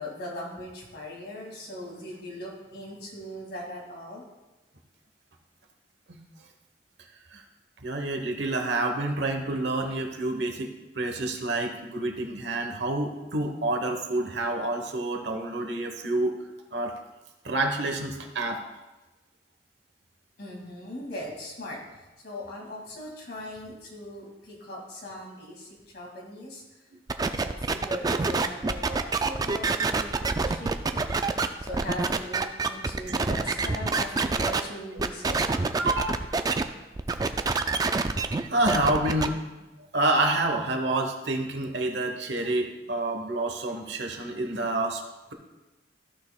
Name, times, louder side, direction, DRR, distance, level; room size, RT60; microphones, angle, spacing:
voice 1, 0.0-4.2 20.4-26.6 27.2-31.0 31.6-35.4, left 1 dB, 60° left, -2 dB, 2.4 m, -39 dB
voice 2, 7.8-16.3 16.7-16.9 17.4-18.6 35.8-36.2 38.5-39.4 39.9-45.0, right 2 dB, 75° right, 4 dB, 1.1 m, -28 dB
sound 1, 27.1-34.6 35.0-36.6 37.0-39.3, right 3 dB, 20° right, 0.3 m, -26 dB
14.5 x 6.2 x 2.3 m, 1.1 s
head